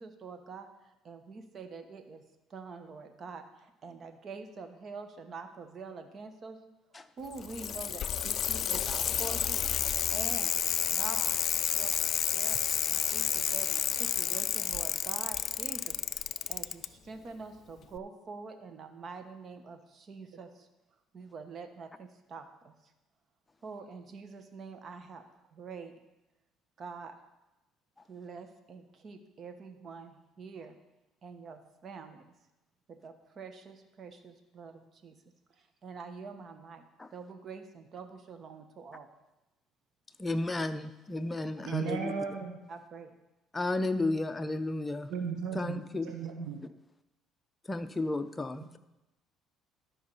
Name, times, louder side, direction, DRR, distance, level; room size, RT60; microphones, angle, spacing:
voice 1, 0.0-2.2 2.5-6.6 7.2-9.8 10.1-10.5 10.9-12.6 12.9-16.0 16.5-20.7 21.1-22.9 23.6-26.0 26.8-27.1 28.1-30.8 31.2-32.3 32.9-35.2 35.5-36.8 37.1-39.1 41.6-41.9 42.7-43.1, right 4 dB, 45° right, 8 dB, 1.1 m, -46 dB
Bicycle, 7.3-16.9 18.0-18.1, left 9 dB, 50° left, 0.3 m, -30 dB
voice 2, 40.2-42.1 43.5-45.1 45.5-46.1 46.4-46.5 47.7-48.8, left 2 dB, 15° left, 9 dB, 0.7 m, -33 dB
voice 3, 41.6-42.6 45.1-46.6 48.6-48.7, right 6 dB, 70° right, 4 dB, 1.0 m, -36 dB
13.0 x 5.6 x 5.5 m, 0.98 s
supercardioid pair, 90°, 0 cm